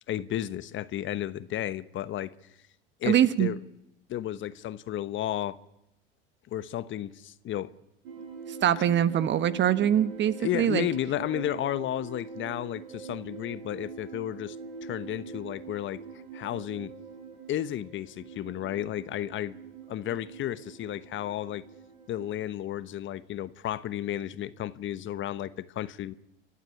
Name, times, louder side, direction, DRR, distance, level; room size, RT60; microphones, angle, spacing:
voice 1, 0.1-2.3 3.0-3.6 4.1-5.6 6.5-7.7 10.4-14.6 14.8-16.0 16.3-16.9 17.5-19.5 19.9-21.7 22.1-26.1, left 12 dB, 40° left, 1.1 m, -33 dB
voice 2, 3.1-3.5 8.6-10.9, right 10 dB, 40° right, 1.2 m, -23 dB
sound 1, 8.0-22.3, right 5 dB, 75° right, 7.4 m, -43 dB
28.5 x 11.5 x 10.0 m
hypercardioid pair, 90°, 30 cm